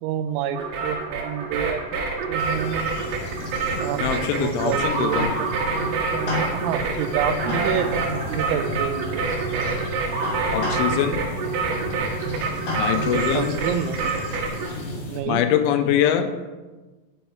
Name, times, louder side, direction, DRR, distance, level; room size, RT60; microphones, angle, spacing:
voice 1, 0.0-2.8 3.8-5.5 5.8-9.2 13.0-14.1 15.1-15.4 16.2-16.3, right 9 dB, 85° right, 9 dB, 3.0 m, -29 dB
sound 1, 0.5-14.7, right 4 dB, 65° right, 3.1 m, -27 dB
sound 2, 2.4-15.2, left 2 dB, 45° left, 2.6 m, -32 dB
voice 2, 4.0-5.3 9.8-9.9 10.5-11.3 12.8-13.6 15.3-16.3, left 9 dB, 90° left, 8 dB, 3.0 m, -23 dB
11.0 x 5.8 x 4.5 m, 1.2 s
omnidirectional pair, 5.4 m